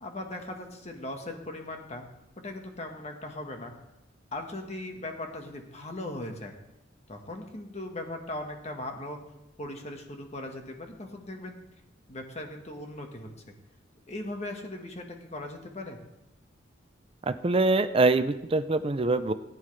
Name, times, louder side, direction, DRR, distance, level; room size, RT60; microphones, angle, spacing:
voice 1, 0.0-2.0 2.4-3.7 4.3-6.5 7.1-9.2 9.6-11.5 12.1-13.3 14.1-16.0, left 1 dB, 35° left, 3 dB, 1.4 m, -38 dB
voice 2, 17.3-19.3, right 2 dB, 30° right, 11 dB, 0.5 m, -24 dB
18.0 x 9.3 x 3.3 m, 0.94 s
head